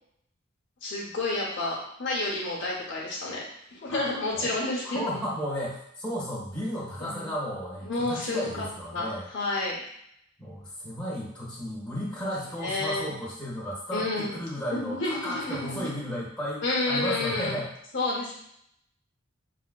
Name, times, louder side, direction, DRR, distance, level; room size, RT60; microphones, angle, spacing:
voice 1, 0.8-3.4 3.7-5.2 7.0-7.3 7.8-8.7 8.9-9.8 12.2-12.3 12.6-13.1 13.9-14.3 14.7-15.9 16.6-17.6 17.9-18.3, left 2 dB, 60° left, -4 dB, 0.8 m, -30 dB
voice 2, 3.9-9.3 10.4-17.7, equal, 5° left, -7 dB, 1.2 m, -34 dB
5.1 x 2.5 x 2.2 m, 0.73 s
head